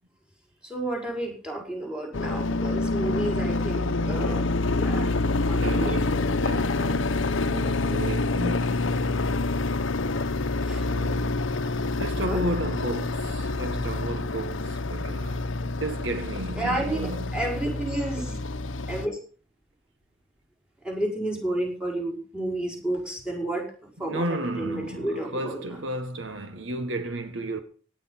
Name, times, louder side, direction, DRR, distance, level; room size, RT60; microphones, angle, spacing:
voice 1, 0.6-6.0 10.7-10.9 12.2-12.4 16.6-18.4 18.9-19.2 20.8-23.7 24.0-25.8, right 1 dB, 5° right, 5.3 m, -31 dB
sound 1, 2.1-19.1, left 3 dB, 75° left, 1.0 m, -27 dB
voice 2, 5.5-9.3 10.7-11.4 12.0-17.4 24.0-27.6, right 1 dB, 70° right, 1.7 m, -34 dB
17.5 x 10.5 x 5.8 m
head